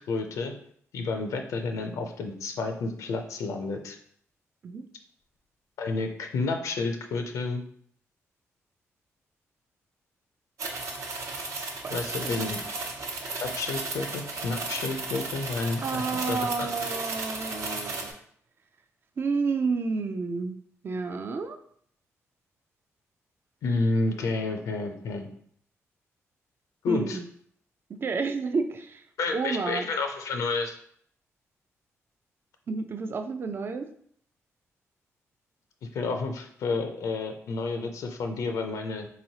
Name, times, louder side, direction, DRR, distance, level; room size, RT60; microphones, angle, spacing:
voice 1, 0.1-0.5 0.9-4.0 5.8-7.6 11.9-12.6 13.2-16.0 16.3-16.7 23.6-25.3 26.8-27.2 29.2-30.8 35.9-39.1, left 3 dB, 85° left, 5 dB, 0.5 m, -30 dB
sound 1, 10.6-18.1, right 3 dB, 70° right, 0.7 m, -34 dB
voice 2, 15.8-18.2 19.2-20.6 20.8-21.6 26.9-27.2 28.0-29.0 29.3-29.9 32.7-33.9, right 4 dB, 45° right, 8 dB, 0.4 m, -30 dB
3.9 x 3.0 x 2.7 m, 0.63 s
cardioid pair, 95°, 5 cm